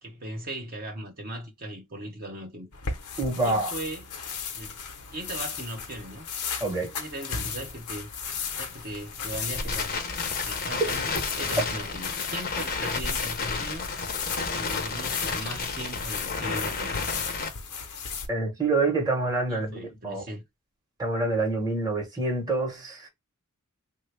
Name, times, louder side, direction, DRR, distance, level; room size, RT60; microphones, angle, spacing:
voice 1, 0.0-2.7 3.4-4.1 4.5-4.8 5.1-6.3 6.9-10.0 10.4-13.9 14.5-17.0 19.5-20.4, right 1 dB, 40° right, 0.9 m, -38 dB
sound 1, 2.7-18.3, left 6 dB, 80° left, 0.8 m, -36 dB
voice 2, 3.2-3.7 6.6-6.9 18.3-20.2 21.0-23.1, right 3 dB, 15° right, 0.9 m, -27 dB
Crackle, 8.2-17.5, left 4 dB, 45° left, 0.7 m, -32 dB
3.4 x 2.2 x 3.2 m
head